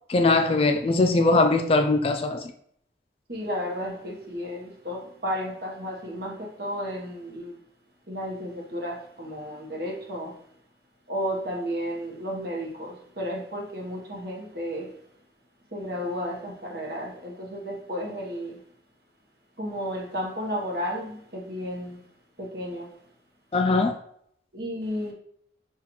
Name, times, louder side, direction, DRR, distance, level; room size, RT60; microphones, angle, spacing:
voice 1, 0.1-2.4 23.5-23.9, left 3 dB, 30° left, 0.3 m, -21 dB
voice 2, 3.3-7.6 8.1-10.4 11.1-15.0 15.7-18.6 19.6-22.0 22.4-22.9 24.5-25.1, equal, 55° right, 1.0 m, -33 dB
5.6 x 2.4 x 2.9 m
head